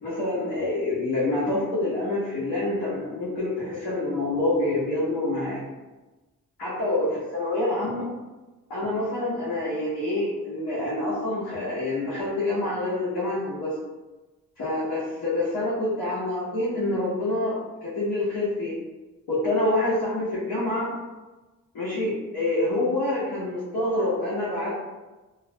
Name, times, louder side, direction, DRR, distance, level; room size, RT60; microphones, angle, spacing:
voice 1, 0.0-5.6 6.6-8.0 8.7-13.7 14.6-18.7 19.3-20.9 21.7-24.7, left 2 dB, 80° left, -9 dB, 0.9 m, -27 dB
2.5 x 2.1 x 2.6 m, 1.2 s
supercardioid pair, 45°, 36 cm